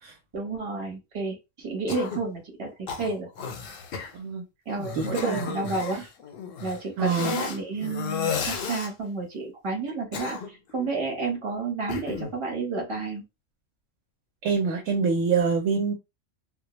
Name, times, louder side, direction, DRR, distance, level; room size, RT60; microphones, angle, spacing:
voice 1, 0.3-3.3 4.7-6.0 6.6-13.2, right 3 dB, 25° right, 1 dB, 0.8 m, -31 dB
Cough, 1.9-2.3 2.9-3.6 3.9-4.1 4.9-6.1 7.0-7.6 8.3-8.9 9.9-10.7 11.9-12.4, left 5 dB, 60° left, 0.6 m, -35 dB
sound 1, 3.4-3.9 4.7-6.8 7.8-8.7, left 6 dB, 85° left, 1.0 m, -33 dB
voice 2, 4.9-5.5 7.0-7.4 14.4-15.9, right 5 dB, 80° right, 3 dB, 1.0 m, -25 dB
2.2 x 2.2 x 2.9 m, 0.24 s
omnidirectional pair, 1.3 m